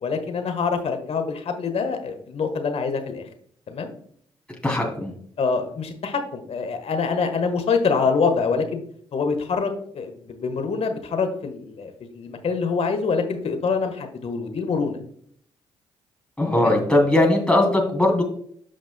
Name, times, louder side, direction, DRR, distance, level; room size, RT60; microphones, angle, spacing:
voice 1, 0.0-3.3 3.7-3.9 5.4-8.8 9.1-15.0 16.6-16.8, left 5 dB, 50° left, 6 dB, 1.3 m, -25 dB
voice 2, 4.6-5.1 16.4-18.2, left 1 dB, 5° left, 0 dB, 2.7 m, -19 dB
14.0 x 5.1 x 2.2 m, 0.63 s
hypercardioid pair, 40°, 13 cm